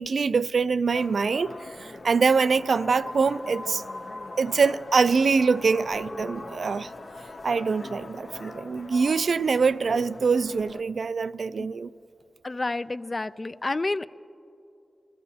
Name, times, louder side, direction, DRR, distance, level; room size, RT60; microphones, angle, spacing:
voice 1, 0.0-1.5 1.8-3.8 4.4-6.9 7.4-11.9, right 5 dB, 75° right, 0.3 m, -24 dB
sound 1, 0.9-10.8, left 2 dB, 55° left, 0.8 m, -41 dB
voice 2, 12.4-14.1, left 2 dB, 40° left, 0.3 m, -29 dB
29.5 x 14.0 x 2.8 m
cardioid pair, 60°, 0 cm